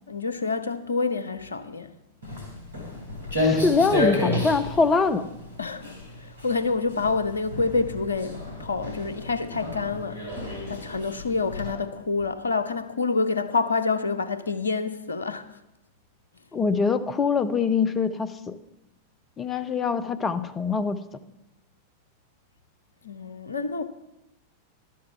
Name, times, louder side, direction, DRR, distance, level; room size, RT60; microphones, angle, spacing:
voice 1, 0.1-1.9 5.6-10.4 10.7-15.6 23.0-23.8, left 4 dB, 75° left, 0.8 m, -28 dB
Walk footsteps, 2.2-11.7, left 1 dB, 80° right, 2.9 m, -31 dB
voice 2, 3.4-5.3 16.5-18.5 19.4-21.0, left 4 dB, 20° left, 0.8 m, -24 dB
12.5 x 7.7 x 6.8 m
figure-of-eight pair, 90°, 0 cm